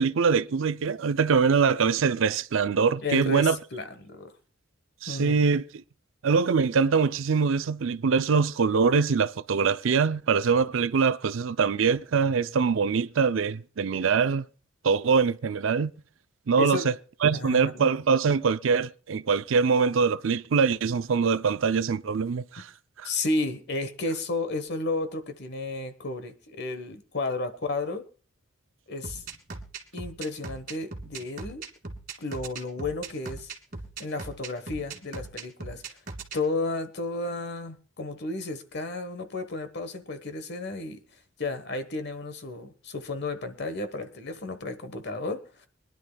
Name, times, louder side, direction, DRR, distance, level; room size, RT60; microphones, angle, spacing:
voice 1, 0.0-3.6 5.0-5.6 6.2-14.5 14.8-15.9 16.5-16.9 17.2-22.7 23.0-23.1, right 5 dB, 70° right, 0.5 m, -23 dB
voice 2, 3.0-4.3 5.1-5.5 16.6-16.9 17.3-17.9 23.0-28.0 28.9-29.2 29.9-31.6 32.2-33.5 34.0-35.8 36.3-41.0 41.4-45.7, left 2 dB, 55° left, 1.3 m, -32 dB
sound 1, 29.0-36.4, right 3 dB, 45° right, 1.8 m, -39 dB
24.5 x 10.5 x 2.3 m
head